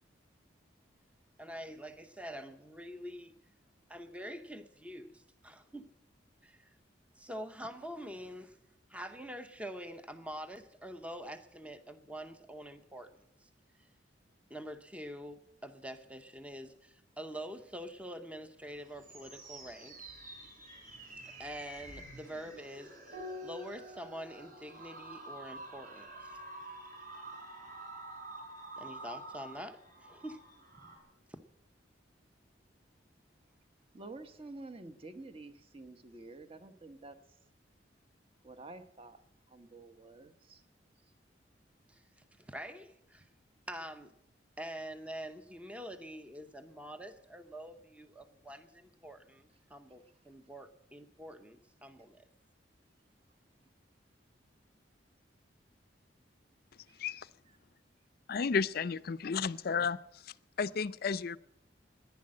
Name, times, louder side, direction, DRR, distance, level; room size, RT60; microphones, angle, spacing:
voice 1, 1.4-3.4 3.9-5.9 6.4-6.8 7.2-8.6 8.9-13.5 13.8-13.9 14.5-20.0 21.2-26.1 28.8-30.4 31.3-31.4 41.9-42.0 42.4-43.3 43.7-44.2 44.6-52.3, equal, 5° right, 0.7 m, -46 dB
sound 1, 18.6-31.0, right 2 dB, 50° right, 4.4 m, -49 dB
Piano, 23.1-28.0 29.6-30.4, left 2 dB, 70° right, 5.0 m, -51 dB
voice 2, 33.9-37.2 38.4-39.2 39.5-40.6 56.9-57.0, right 2 dB, 30° right, 1.0 m, -49 dB
voice 3, 58.3-60.0 60.2-61.4, left 5 dB, 55° left, 0.5 m, -33 dB
15.0 x 10.5 x 7.5 m
head